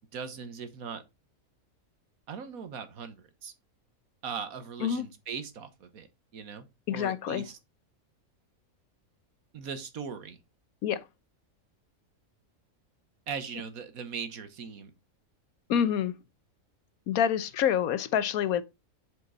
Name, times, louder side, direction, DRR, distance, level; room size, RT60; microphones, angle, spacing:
voice 1, 0.1-1.0 2.3-3.5 4.2-6.1 6.3-7.6 9.5-10.4 13.3-14.9, right 6 dB, 85° right, 1.6 m, -39 dB
voice 2, 6.9-7.4 10.8-11.0 15.7-16.1 17.1-18.6, left 9 dB, 85° left, 1.2 m, -27 dB
7.9 x 5.3 x 3.9 m
omnidirectional pair, 1.5 m